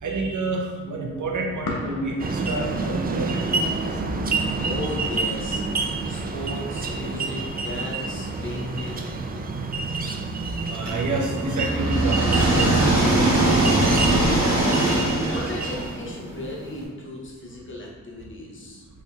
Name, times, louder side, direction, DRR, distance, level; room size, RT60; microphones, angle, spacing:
voice 1, 0.0-3.6 10.7-13.7, right 3 dB, 65° right, 1 dB, 0.7 m, -28 dB
sound 1, 1.1-9.7, left 2 dB, 85° left, 0.6 m, -39 dB
sound 2, 2.2-15.9, right 3 dB, 30° right, 0.4 m, -29 dB
voice 2, 4.6-5.6 6.1-9.1 15.3-18.9, left 1 dB, 35° left, -2 dB, 0.9 m, -35 dB
sound 3, 10.9-16.7, right 1 dB, 80° right, 1.2 m, -22 dB
4.3 x 2.6 x 2.4 m, 1.4 s
cardioid pair, 45°, 33 cm